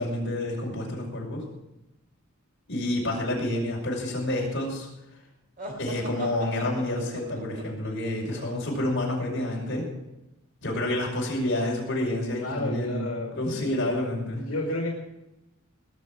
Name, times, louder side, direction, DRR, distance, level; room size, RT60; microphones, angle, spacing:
voice 1, 0.0-1.4 2.7-4.9 5.8-9.9 10.6-14.4, left 1 dB, 55° left, -2 dB, 5.8 m, -29 dB
sound 1, 5.6-9.3, right 1 dB, 40° right, 3.4 m, -40 dB
voice 2, 12.3-13.7 14.3-14.9, left 1 dB, 80° left, -1 dB, 2.5 m, -31 dB
19.5 x 7.2 x 8.6 m, 0.93 s
head